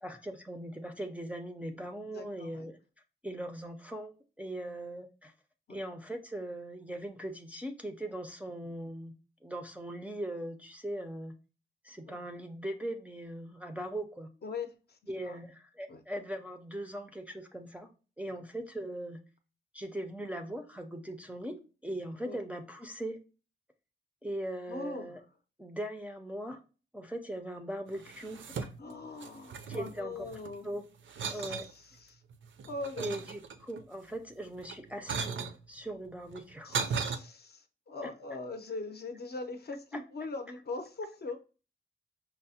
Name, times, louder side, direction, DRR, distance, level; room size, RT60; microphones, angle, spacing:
voice 1, 0.0-2.8 3.2-4.1 4.4-5.3 5.7-11.4 11.8-14.3 15.1-17.9 18.2-19.2 19.7-23.2 24.2-25.2 25.6-26.6 26.9-28.7 29.7-30.3 30.6-30.8 31.3-31.7 33.0-36.8 38.0-38.1, right 1 dB, 5° right, 0.4 m, -40 dB
voice 2, 2.1-2.7 5.7-5.8 12.1-12.2 14.4-15.0 15.2-15.4 15.9-16.0 22.2-22.4 24.7-25.2 28.8-30.7 31.2-32.2 32.7-33.2 36.6-41.4, left 3 dB, 50° left, 0.5 m, -41 dB
sound 1, 27.9-28.9 29.2-30.6 31.1-31.7 32.3-33.8 34.6-35.6 36.3-37.2, right 5 dB, 70° right, 0.4 m, -37 dB
5.6 x 2.0 x 2.7 m
wide cardioid pair, 135°, 21 cm